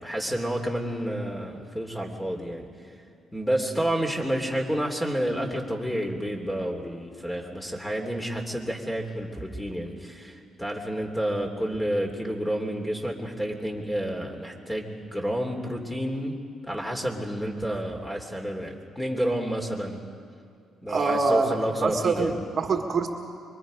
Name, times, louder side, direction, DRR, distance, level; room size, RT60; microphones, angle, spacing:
voice 1, 0.0-2.7 3.3-16.4 16.6-20.0 20.8-22.4, equal, 10° left, 2 dB, 3.3 m, -30 dB
voice 2, 20.9-21.6 21.8-23.1, right 4 dB, 50° right, 3 dB, 1.8 m, -25 dB
25.0 x 23.0 x 5.2 m, 2.4 s
cardioid pair, 90°, 0 cm